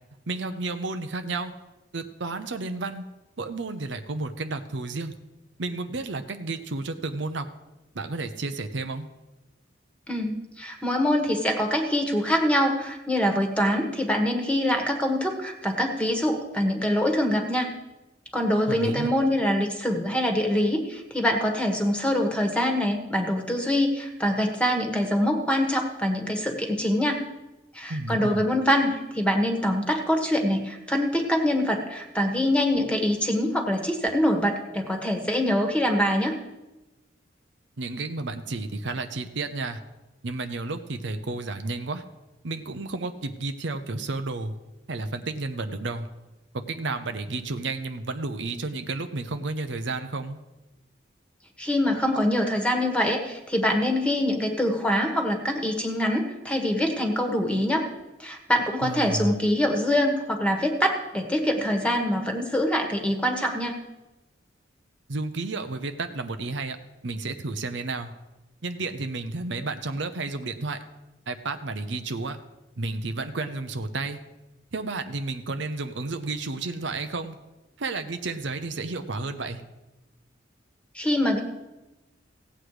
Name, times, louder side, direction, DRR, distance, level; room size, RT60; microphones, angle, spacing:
voice 1, 0.3-1.5 1.9-3.0 3.4-5.1 5.6-7.5 7.9-9.1 18.7-19.1 27.9-28.4 37.8-39.8 40.2-42.0 42.4-44.5 44.9-46.1 46.5-50.4 58.8-59.4 65.1-66.8 67.0-68.1 68.6-70.8 71.3-72.4 72.8-74.2 74.7-77.4 77.8-79.6, right 3 dB, 70° right, 8 dB, 0.8 m, -31 dB
voice 2, 10.1-17.7 18.3-27.2 27.7-36.3 51.6-57.9 58.2-63.8 80.9-81.4, left 1 dB, 5° left, 3 dB, 1.5 m, -24 dB
16.5 x 8.0 x 4.9 m, 1.0 s
head